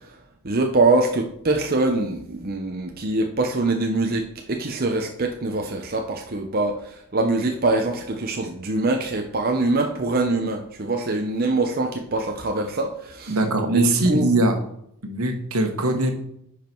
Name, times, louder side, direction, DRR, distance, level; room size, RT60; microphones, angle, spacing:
voice 1, 0.4-13.4 13.7-14.3, right 2 dB, 40° right, 3 dB, 0.8 m, -24 dB
voice 2, 13.3-14.6 15.0-16.1, right 2 dB, 75° right, 5 dB, 1.4 m, -21 dB
10.5 x 5.0 x 4.6 m, 0.74 s
head